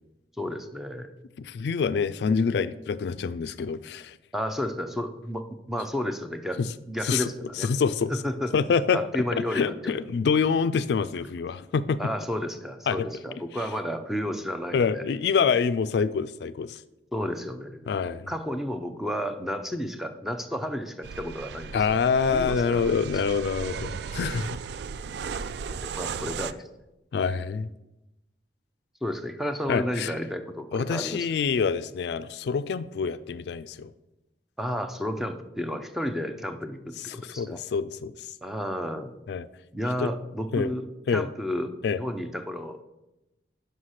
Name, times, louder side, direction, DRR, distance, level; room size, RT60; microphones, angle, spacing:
voice 1, 0.4-1.1 4.3-6.6 6.9-7.7 8.1-8.5 8.9-9.9 12.0-15.0 17.1-17.9 18.3-22.0 22.3-23.0 24.2-24.3 25.7-26.6 29.0-31.3 34.6-37.6 38.4-39.1 39.7-42.8, equal, ahead, 7 dB, 0.5 m, -32 dB
voice 2, 1.4-4.2 6.6-6.7 7.0-7.3 7.6-8.1 8.5-12.0 12.9-13.1 14.7-16.8 17.9-18.3 21.7-24.5 27.1-27.7 29.7-30.1 30.7-33.9 37.1-38.3 39.3-39.5 40.0-40.1 40.5-40.7 41.1-41.3 41.8-42.0, left 5 dB, 65° left, 14 dB, 0.3 m, -26 dB
sound 1, 21.0-26.5, right 5 dB, 65° right, 0.3 m, -35 dB
5.8 x 5.4 x 6.4 m, 0.95 s
head